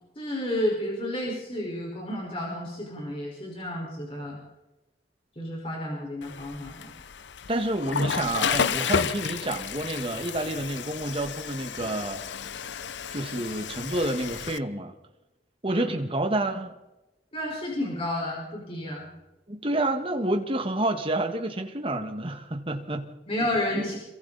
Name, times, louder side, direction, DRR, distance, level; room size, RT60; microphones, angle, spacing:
voice 1, 0.1-4.4 5.3-6.9 15.7-15.9 17.3-19.1 23.3-24.0, left 1 dB, 30° left, -3 dB, 5.2 m, -31 dB
Water / Toilet flush, 6.2-14.6, left 6 dB, 80° left, 0.6 m, -32 dB
voice 2, 7.5-12.2 13.1-14.9 15.6-16.7 19.5-23.1, right 1 dB, 30° right, 5 dB, 1.8 m, -29 dB
27.5 x 22.5 x 4.3 m, 1.0 s
head